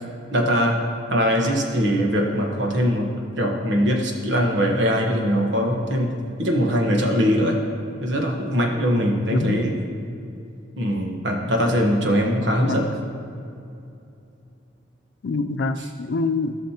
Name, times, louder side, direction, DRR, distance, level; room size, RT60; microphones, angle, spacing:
voice 1, 0.3-0.8 1.1-3.1 3.4-6.1 6.4-7.6 8.0-9.7 10.8-12.9, equal, 85° right, 1 dB, 1.2 m, -21 dB
voice 2, 9.3-9.7 12.6-12.9 15.2-16.7, left 3 dB, 80° left, 11 dB, 0.4 m, -26 dB
14.5 x 6.4 x 2.9 m, 2.6 s
head